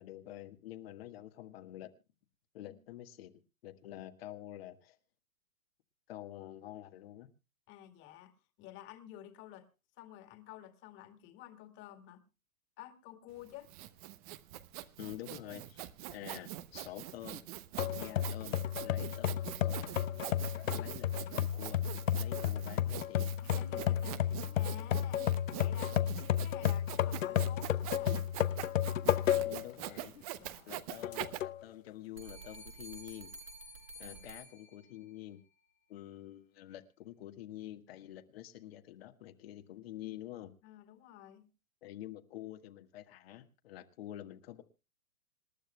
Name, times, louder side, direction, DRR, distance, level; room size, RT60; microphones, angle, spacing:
voice 1, 0.0-1.9 2.5-3.3 3.6-5.0 6.1-7.3 15.0-15.8 16.1-17.4 17.9-19.9 20.7-21.8 22.1-23.3 29.4-30.2 30.7-33.3 34.0-35.4 35.9-40.5 41.8-44.6, left 13 dB, 45° left, 1.6 m, -48 dB
voice 2, 7.7-9.7 10.0-12.2 12.8-13.7 23.4-28.3 30.4-30.7 34.0-34.3 40.6-41.5, left 13 dB, 30° left, 2.1 m, -52 dB
Sawing, 13.4-31.4, right 15 dB, 30° right, 0.7 m, -44 dB
sound 1, 17.8-29.7 30.2-30.3 31.0-31.6, left 11 dB, 70° left, 0.8 m, -32 dB
sound 2, 32.2-35.2, right 1 dB, 75° right, 6.1 m, -50 dB
27.0 x 12.0 x 2.2 m
hypercardioid pair, 130°, 40 cm